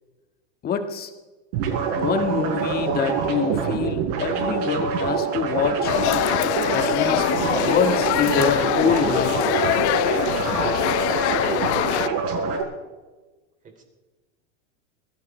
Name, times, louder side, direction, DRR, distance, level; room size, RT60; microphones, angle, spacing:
voice 1, 0.6-1.1 1.9-5.9 6.7-7.3 7.6-9.5, left 6 dB, 25° left, 7 dB, 1.7 m, -25 dB
sound 1, 1.5-12.6, right 5 dB, 60° right, 5.2 m, -25 dB
sound 2, 5.8-12.1, left 17 dB, 75° left, 0.5 m, -24 dB
voice 2, 11.1-12.5 13.6-13.8, right 3 dB, 25° right, 4 dB, 3.5 m, -40 dB
21.0 x 16.0 x 3.3 m, 1.2 s
supercardioid pair, 135°, 34 cm